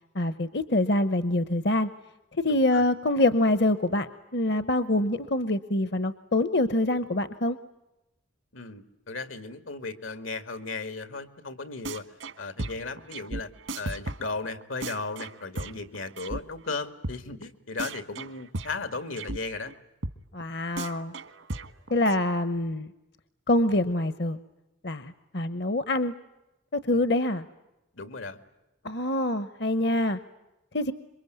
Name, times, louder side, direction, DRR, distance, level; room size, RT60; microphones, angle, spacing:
voice 1, 0.1-1.9 2.4-7.6 20.3-21.1 21.9-22.9 23.5-24.4 24.8-26.1 26.7-27.4 28.8-30.2 30.7-30.9, left 1 dB, 55° left, 13 dB, 0.9 m, -25 dB
voice 2, 8.5-12.0 12.4-13.5 13.7-19.7 27.9-28.4, left 3 dB, 90° left, 10 dB, 2.2 m, -36 dB
sound 1, 11.8-12.3 12.6-16.4 16.7-16.8 17.0-17.2 17.4-17.5 17.8-19.4 19.6-19.7 20.0-20.1 20.4-20.5 20.8-22.2, right 2 dB, 80° right, 1.5 m, -35 dB
27.5 x 23.5 x 9.3 m, 0.96 s
head